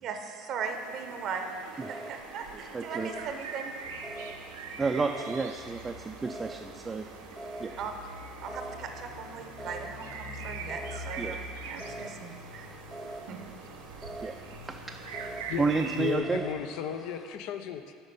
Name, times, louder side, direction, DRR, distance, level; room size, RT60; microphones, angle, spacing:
voice 1, 0.0-3.7 7.8-7.9 8.4-11.4 11.6-12.7 13.3-13.4, right 5 dB, 55° right, 5 dB, 0.8 m, -38 dB
sound 1, 0.6-16.2, right 5 dB, 85° right, 0.6 m, -44 dB
sound 2, 1.4-17.4, right 1 dB, ahead, 0.8 m, -46 dB
voice 2, 2.7-3.1 4.8-7.1 7.6-7.8 11.2-11.4 14.0-15.0 15.6-16.4, right 4 dB, 25° right, 3 dB, 0.4 m, -31 dB
sound 3, 3.8-16.5, left 3 dB, 85° left, 1.3 m, -49 dB
voice 3, 15.9-17.9, left 8 dB, 70° left, 8 dB, 0.5 m, -34 dB
8.0 x 5.2 x 5.3 m, 2.1 s
hypercardioid pair, 75°, 0 cm